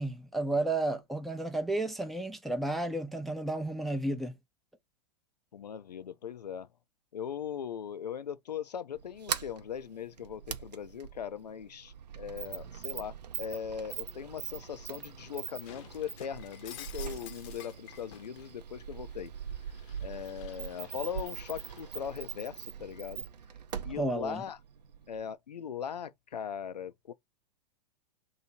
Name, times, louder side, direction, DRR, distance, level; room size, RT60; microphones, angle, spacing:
voice 1, 0.0-4.4 23.9-24.4, right 2 dB, ahead, 0.5 m, -32 dB
voice 2, 5.5-6.7 7.1-19.3 20.0-23.2 23.8-24.6 25.1-27.1, left 8 dB, 85° left, 0.5 m, -39 dB
Sliding door, 8.9-25.3, right 8 dB, 80° right, 0.6 m, -42 dB
Shatter, 15.6-18.5 18.9-22.1, left 10 dB, 50° left, 0.7 m, -51 dB
2.8 x 2.7 x 4.3 m
hypercardioid pair, 105°, 21 cm